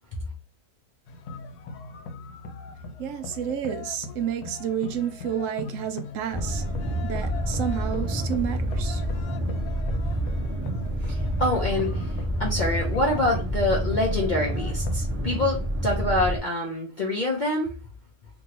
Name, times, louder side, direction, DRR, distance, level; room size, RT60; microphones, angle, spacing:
sound 1, 1.1-15.0, left 4 dB, 85° left, 1.1 m, -40 dB
voice 1, 3.0-6.6 7.0-9.0, right 9 dB, 65° right, 0.9 m, -30 dB
sound 2, 6.3-16.4, right 1 dB, 15° right, 0.3 m, -28 dB
voice 2, 11.0-12.1 12.4-17.7, left 1 dB, 55° left, 0.5 m, -26 dB
3.0 x 2.6 x 2.8 m
omnidirectional pair, 1.6 m